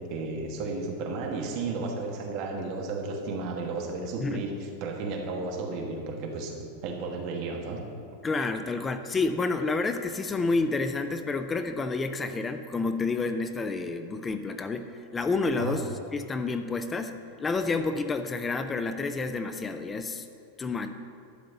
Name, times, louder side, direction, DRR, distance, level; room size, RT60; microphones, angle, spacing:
voice 1, 0.0-7.8 15.6-15.7, right 3 dB, 35° right, 1 dB, 1.2 m, -33 dB
voice 2, 8.2-14.9 15.1-20.3 20.6-20.9, left 3 dB, 10° left, 9 dB, 0.3 m, -29 dB
11.5 x 4.0 x 7.8 m, 2.4 s
supercardioid pair, 180°, 0 cm